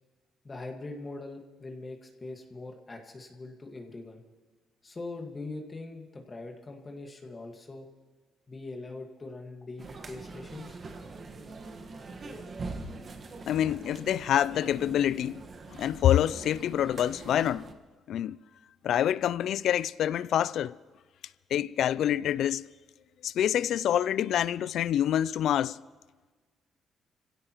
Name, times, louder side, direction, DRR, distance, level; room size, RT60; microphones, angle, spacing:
voice 1, 0.4-4.2 4.8-7.9 8.5-10.8, left 2 dB, 30° left, 1.7 m, -42 dB
sound 1, 9.8-17.7, right 3 dB, 45° right, 1.4 m, -43 dB
voice 2, 13.5-15.4 15.7-17.7 18.1-18.4 18.8-20.7 21.5-22.6 23.2-25.8, left 11 dB, 75° left, 0.4 m, -26 dB
26.0 x 16.5 x 3.0 m
cardioid pair, 90°, 0 cm